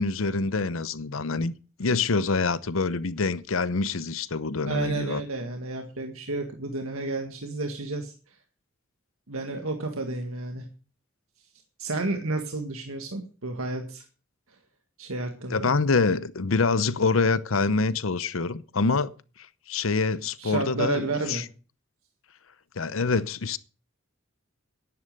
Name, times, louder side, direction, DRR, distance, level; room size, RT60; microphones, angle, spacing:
voice 1, 0.0-1.5 1.8-5.2 15.5-19.1 19.7-21.4 22.8-23.6, left 4 dB, 75° left, 0.8 m, -25 dB
voice 2, 4.7-8.1 9.3-10.6 11.8-14.0 15.0-15.7 20.4-21.5, right 3 dB, 90° right, 1.9 m, -31 dB
11.0 x 10.5 x 6.7 m
head